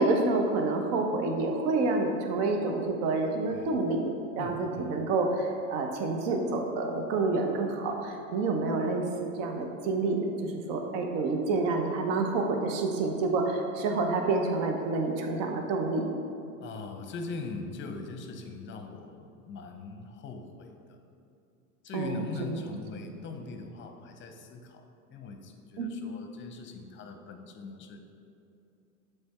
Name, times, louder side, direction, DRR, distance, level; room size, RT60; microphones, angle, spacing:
voice 1, 0.0-4.1 4.4-9.0 9.4-16.1 21.9-22.6 22.9-23.0 25.8-25.9, right 3 dB, 55° right, 3 dB, 0.9 m, -28 dB
voice 2, 4.4-5.0 16.6-21.0 21.8-24.8 25.1-28.0, left 4 dB, 30° left, 6 dB, 0.7 m, -41 dB
7.5 x 3.4 x 4.3 m, 2.6 s
hypercardioid pair, 90°, 41 cm